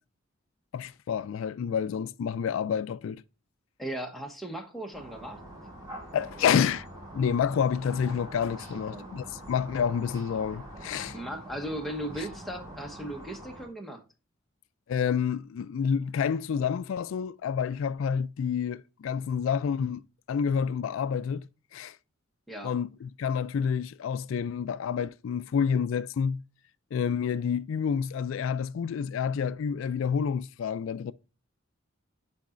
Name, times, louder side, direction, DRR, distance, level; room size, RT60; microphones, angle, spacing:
voice 1, 0.7-3.2 6.1-6.8 7.1-11.2 14.9-20.0 20.3-21.4 21.7-22.0 22.6-26.4 26.9-31.1, left 7 dB, 75° left, 0.3 m, -29 dB
voice 2, 3.8-5.4 6.4-6.7 8.7-9.1 11.1-14.0 22.5-22.8, right 1 dB, ahead, 1.0 m, -37 dB
sound 1, 4.9-13.7, right 1 dB, 20° right, 3.2 m, -44 dB
11.5 x 4.0 x 2.5 m
head